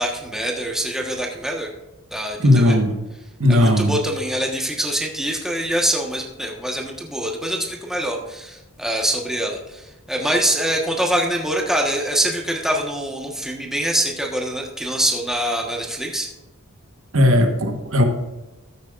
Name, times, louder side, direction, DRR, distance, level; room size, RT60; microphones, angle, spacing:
voice 1, 0.0-1.7 2.1-2.4 2.7-2.8 3.5-16.3, right 1 dB, ahead, 0 dB, 1.3 m, -24 dB
voice 2, 2.4-3.0 3.4-3.9 17.1-18.0, left 1 dB, 70° right, 5 dB, 1.4 m, -16 dB
14.5 x 8.6 x 2.5 m, 1.0 s
head